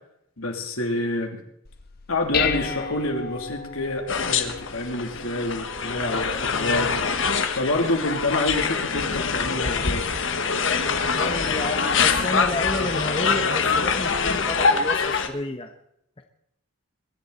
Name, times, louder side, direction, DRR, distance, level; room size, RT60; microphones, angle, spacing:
voice 1, 0.4-1.4 2.1-10.1, left 2 dB, 80° left, 3 dB, 2.9 m, -28 dB
Dishes pots and pans, 1.6-10.9, left 7 dB, 45° left, 1.2 m, -36 dB
sound 1, 4.1-15.3, left 5 dB, 60° left, 1.4 m, -24 dB
voice 2, 11.1-15.7, left 2 dB, 25° left, 6 dB, 1.0 m, -31 dB
22.5 x 11.5 x 4.1 m, 0.77 s
head